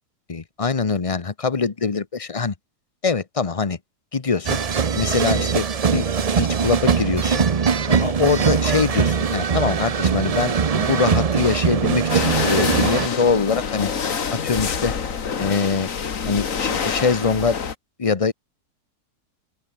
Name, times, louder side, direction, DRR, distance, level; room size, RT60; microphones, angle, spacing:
voice 1, 0.3-2.5 3.0-3.8 4.1-4.6 4.9-6.1 6.3-7.4 7.9-13.9 14.3-14.9 15.4-15.9 16.3-17.6 18.0-18.3, left 4 dB, 25° left, 0.8 m, -23 dB
sound 1, 4.4-13.1, right 6 dB, 50° right, 0.4 m, -21 dB
sound 2, 12.1-17.7, left 6 dB, 55° left, 1.9 m, -26 dB
open air
omnidirectional pair, 1.7 m